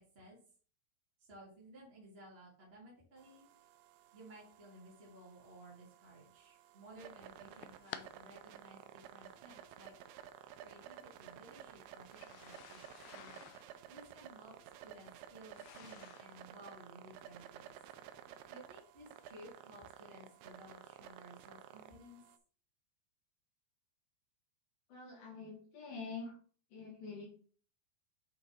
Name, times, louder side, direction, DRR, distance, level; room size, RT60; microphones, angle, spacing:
voice 1, 1.2-3.5 4.1-9.9 10.6-13.4 13.9-14.5 14.8-17.7 18.5-22.2, right 1 dB, 20° right, -6 dB, 1.9 m, -57 dB
sound 1, 3.2-22.4, right 10 dB, 80° right, 2.5 m, -54 dB
sound 2, 7.3-8.1 9.1-9.2 10.4-10.5 12.0-16.4, left 11 dB, 85° left, 1.9 m, -53 dB
voice 2, 24.9-26.3 26.7-27.3, left 4 dB, 65° left, -2 dB, 3.4 m, -46 dB
8.3 x 3.8 x 4.3 m, 0.43 s
omnidirectional pair, 4.5 m